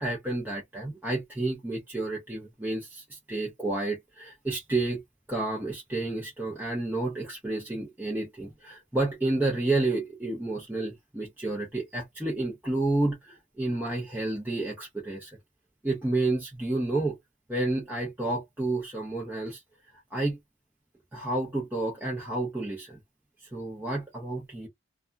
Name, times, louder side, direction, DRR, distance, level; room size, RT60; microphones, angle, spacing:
voice 1, 0.0-5.0 5.3-15.4 15.8-17.2 17.5-19.6 20.1-20.4 21.1-23.0 23.5-24.7, right 2 dB, 10° right, 0.8 m, -30 dB
2.8 x 2.4 x 2.3 m
head